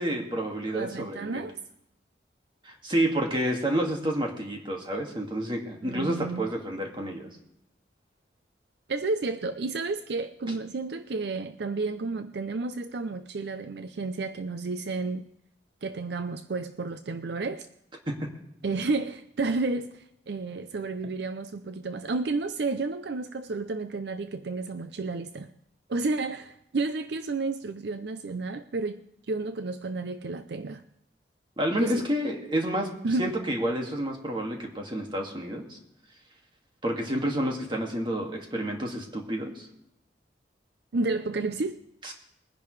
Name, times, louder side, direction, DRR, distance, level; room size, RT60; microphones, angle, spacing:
voice 1, 0.0-1.4 2.6-7.3 18.1-18.3 31.6-32.9 33.2-35.8 36.8-39.7 42.0-42.1, right 1 dB, 25° right, 2.0 m, -29 dB
voice 2, 0.7-1.6 5.8-6.4 8.9-15.3 15.8-17.7 18.6-25.5 25.9-30.8 31.8-32.1 33.0-33.3 40.9-41.8, right 3 dB, 65° right, 0.5 m, -31 dB
21.5 x 10.5 x 3.2 m
head